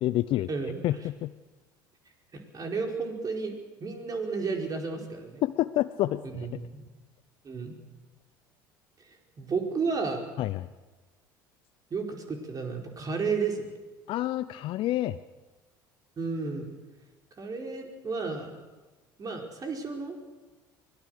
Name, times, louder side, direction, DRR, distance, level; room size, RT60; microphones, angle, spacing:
voice 1, 0.0-0.5 0.8-1.3 5.4-6.5 10.4-10.7 14.1-15.2, left 14 dB, 55° left, 13 dB, 0.7 m, -28 dB
voice 2, 2.3-5.4 6.2-6.8 7.4-7.8 9.4-10.2 11.9-13.7 16.2-16.7 17.4-18.5 19.2-20.2, right 4 dB, 35° right, 2 dB, 4.8 m, -32 dB
24.0 x 19.0 x 6.6 m, 1.2 s
hypercardioid pair, 65°, 11 cm